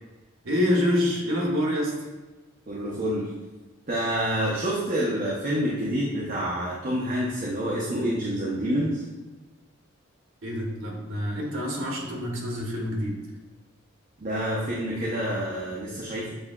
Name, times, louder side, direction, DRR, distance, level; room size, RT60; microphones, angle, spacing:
voice 1, 0.4-1.9 10.4-13.1, left 1 dB, 75° right, -1 dB, 1.0 m, -26 dB
voice 2, 2.7-3.3 3.9-9.0 14.2-16.3, equal, 40° right, -5 dB, 0.7 m, -27 dB
7.8 x 2.7 x 2.4 m, 1.2 s
head